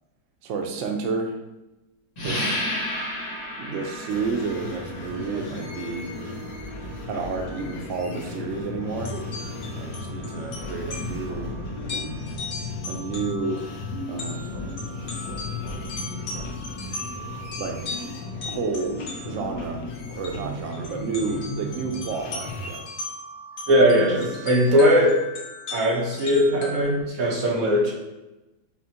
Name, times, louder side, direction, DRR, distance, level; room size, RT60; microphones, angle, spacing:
voice 1, 0.4-1.4 2.2-2.6 3.6-6.2 7.0-9.2 9.6-11.6 12.9-13.7 14.1-14.6 17.6-17.9 18.4-19.8 20.2-22.9, right 4 dB, 90° right, 3 dB, 0.6 m, -30 dB
sound 1, 2.2-12.5, left 1 dB, 40° left, 0.6 m, -36 dB
sound 2, 4.1-22.8, left 2 dB, 80° left, 1.3 m, -35 dB
sound 3, 9.0-19.6 20.2-20.4 20.7-26.8, left 2 dB, 55° left, 1.2 m, -38 dB
voice 2, 23.7-25.2 25.7-27.9, equal, 55° right, -2 dB, 1.2 m, -19 dB
5.9 x 2.1 x 2.8 m, 1.0 s
omnidirectional pair, 1.9 m